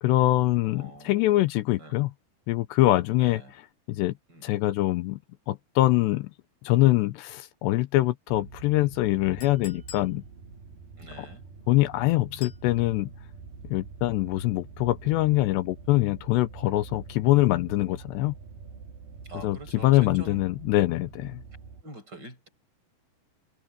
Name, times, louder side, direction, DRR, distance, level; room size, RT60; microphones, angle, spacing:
voice 1, 0.0-2.1 2.5-3.6 3.9-4.2 4.4-5.2 5.5-6.3 6.6-10.2 11.2-11.3 11.7-13.1 13.7-18.3 19.4-21.4, left 17 dB, 80° left, 2.9 m, -24 dB
voice 2, 0.6-1.3 1.8-2.0 3.2-3.5 4.3-4.6 11.0-11.5 19.2-20.4 21.8-22.5, right 1 dB, 20° right, 7.0 m, -45 dB
sound 1, 8.3-21.8, right 5 dB, 60° right, 4.5 m, -45 dB
Chink clink, 9.4-10.1 12.4-12.7, left 7 dB, 60° left, 9.2 m, -45 dB
omnidirectional pair, 5.0 m